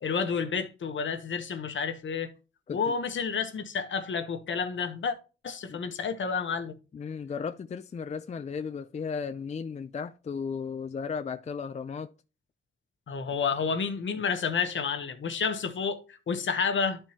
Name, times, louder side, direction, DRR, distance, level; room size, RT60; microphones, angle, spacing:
voice 1, 0.0-2.3 2.7-5.1 5.4-6.8 13.1-17.0, left 5 dB, 65° left, 1.1 m, -30 dB
voice 2, 6.9-12.1, left 6 dB, 35° left, 0.4 m, -35 dB
12.5 x 4.4 x 2.9 m
wide cardioid pair, 110°, 21 cm